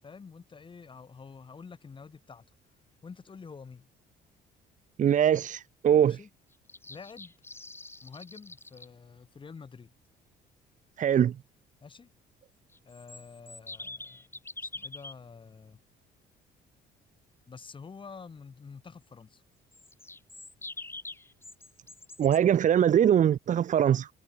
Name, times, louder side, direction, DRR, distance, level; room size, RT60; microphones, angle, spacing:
voice 1, 0.0-2.4 3.0-3.9 6.0-6.3 6.9-7.3 8.0-9.9 11.8-12.1 12.8-15.8 17.5-19.4, left 5 dB, 30° left, 7.6 m, -48 dB
voice 2, 5.0-6.2 11.0-11.4 22.2-24.1, right 9 dB, 50° right, 1.5 m, -22 dB
sound 1, 6.5-8.9 12.7-15.1 19.7-22.4, left 2 dB, 15° left, 7.9 m, -44 dB
cardioid pair, 110°, 17 cm